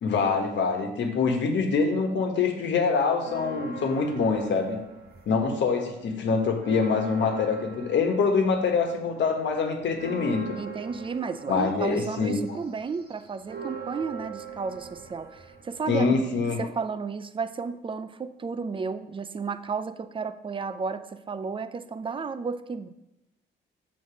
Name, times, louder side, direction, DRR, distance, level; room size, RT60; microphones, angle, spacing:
voice 1, 0.0-4.8 5.3-10.6 11.5-12.4 15.9-16.6, left 5 dB, 65° left, 3 dB, 1.4 m, -25 dB
sound 1, 3.2-5.6 5.9-16.4, right 5 dB, 50° right, 1.2 m, -42 dB
voice 2, 10.6-16.1 16.6-22.9, right 5 dB, 25° right, 12 dB, 0.5 m, -33 dB
6.8 x 4.0 x 6.2 m, 0.91 s
cardioid pair, 90°, 20 cm